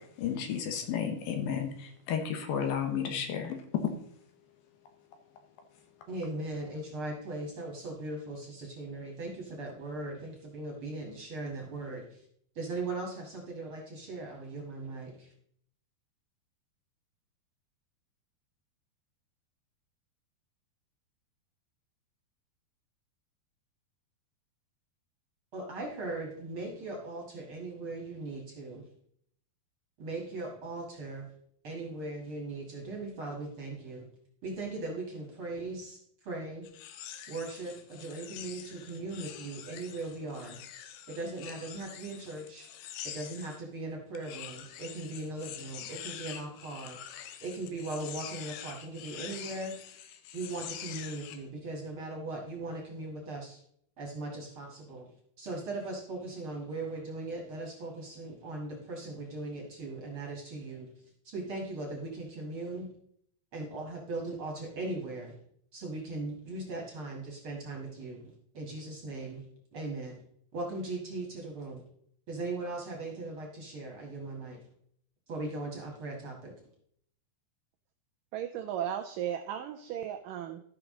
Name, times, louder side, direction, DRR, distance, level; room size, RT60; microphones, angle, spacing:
voice 1, 0.2-3.6, left 7 dB, 70° left, 5 dB, 2.7 m, -32 dB
voice 2, 6.1-12.3 12.6-15.3 25.5-28.8 30.0-31.3 31.6-34.1 34.4-36.0 36.2-36.7 37.3-40.6 41.1-42.7 43.0-47.0 47.4-49.8 50.3-53.6 54.0-55.1 55.4-60.9 61.2-62.9 63.5-65.4 65.7-69.4 69.7-70.1 70.5-71.8 72.3-74.6 75.3-76.6, right 2 dB, 45° right, 0 dB, 1.9 m, -39 dB
sound 1, 36.6-43.6 44.1-51.4, left 10 dB, 90° left, 2.8 m, -45 dB
voice 3, 78.3-80.6, right 10 dB, 90° right, 7 dB, 1.9 m, -35 dB
13.5 x 6.0 x 3.7 m, 0.66 s
omnidirectional pair, 4.6 m